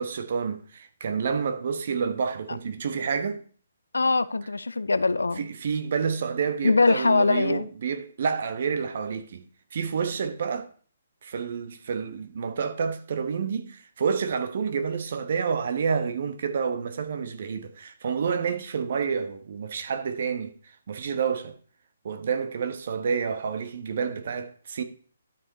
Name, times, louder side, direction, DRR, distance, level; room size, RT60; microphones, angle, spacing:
voice 1, 0.0-3.4 5.4-10.7 11.2-21.5 22.0-24.8, right 6 dB, 55° right, 1.2 m, -29 dB
voice 2, 3.9-5.4 6.6-7.7, left 3 dB, 80° left, 0.5 m, -22 dB
12.0 x 5.2 x 4.1 m
figure-of-eight pair, 135°, 0 cm